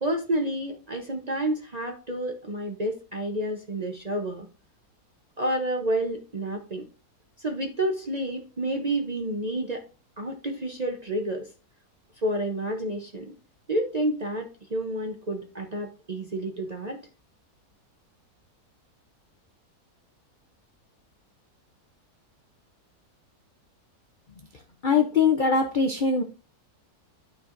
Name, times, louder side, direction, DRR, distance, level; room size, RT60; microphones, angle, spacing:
voice 1, 0.0-4.5 5.4-6.8 7.4-9.8 10.2-11.5 12.2-13.3 13.7-17.0, right 1 dB, 35° right, 3 dB, 0.7 m, -29 dB
voice 2, 24.8-26.2, left 5 dB, 55° left, 4 dB, 0.5 m, -22 dB
12.0 x 4.5 x 2.5 m, 0.35 s
omnidirectional pair, 1.6 m